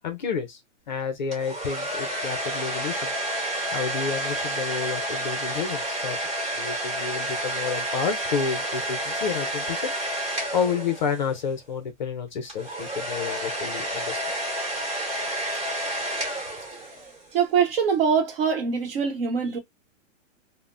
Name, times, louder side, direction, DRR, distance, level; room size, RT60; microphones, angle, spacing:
voice 1, 0.0-0.6 0.9-3.1 3.7-6.2 6.6-9.9 10.5-14.3, left 6 dB, 40° left, 0.5 m, -30 dB
sound 1, 1.3-11.4 12.5-17.2, right 1 dB, 20° right, 1.7 m, -30 dB
voice 2, 17.3-19.6, right 6 dB, 50° right, 1.0 m, -23 dB
3.3 x 2.1 x 2.5 m
hypercardioid pair, 170°, 38 cm